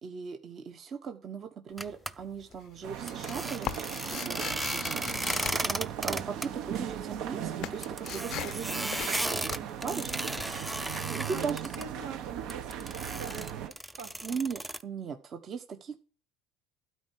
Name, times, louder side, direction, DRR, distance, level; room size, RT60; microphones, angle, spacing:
voice 1, 0.0-4.4 4.7-5.0 5.6-10.4 11.3-11.8 14.2-16.0, right 6 dB, 40° right, 6 dB, 1.3 m, -38 dB
sound 1, 1.7-2.2 2.5-6.6 6.8-12.4, left 13 dB, 55° left, 0.5 m, -41 dB
sound 2, 1.8-2.1 3.1-6.5 6.8-6.9 7.2-7.3 7.8-11.8 12.5-14.8, right 1 dB, 5° right, 0.6 m, -35 dB
sound 3, 2.8-13.7, right 10 dB, 65° right, 1.2 m, -38 dB
voice 2, 11.0-14.4, right 6 dB, 90° right, 2 dB, 3.7 m, -44 dB
12.5 x 4.5 x 7.6 m, 0.38 s
cardioid pair, 120°, 0 cm